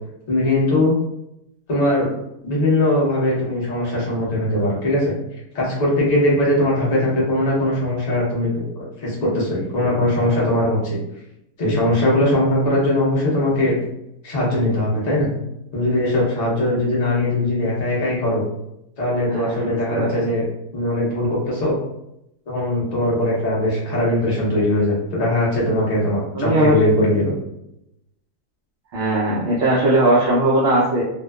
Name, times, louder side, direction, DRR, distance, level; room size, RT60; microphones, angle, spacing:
voice 1, 0.3-0.9 1.7-2.1 2.4-5.1 5.5-8.5 8.7-11.0 11.6-13.7 14.2-15.3 15.7-18.4 19.0-20.4 20.7-21.8 22.5-27.3, left 1 dB, 35° left, -5 dB, 0.7 m, -20 dB
voice 2, 19.3-20.1 26.3-26.8 28.9-31.0, right 2 dB, 70° right, -7 dB, 0.6 m, -19 dB
2.7 x 2.2 x 2.2 m, 0.83 s
omnidirectional pair, 1.7 m